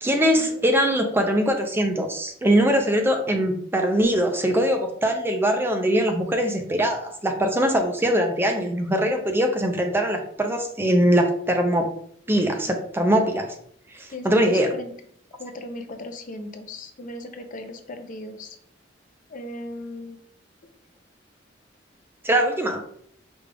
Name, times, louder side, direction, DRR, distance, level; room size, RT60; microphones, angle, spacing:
voice 1, 0.0-11.9 12.3-13.5 13.9-14.7 22.2-22.8, equal, 10° right, 4 dB, 0.4 m, -22 dB
voice 2, 14.1-14.9 15.4-18.6 19.3-20.2, left 2 dB, 45° left, 6 dB, 0.5 m, -37 dB
5.1 x 2.3 x 3.3 m, 0.66 s
head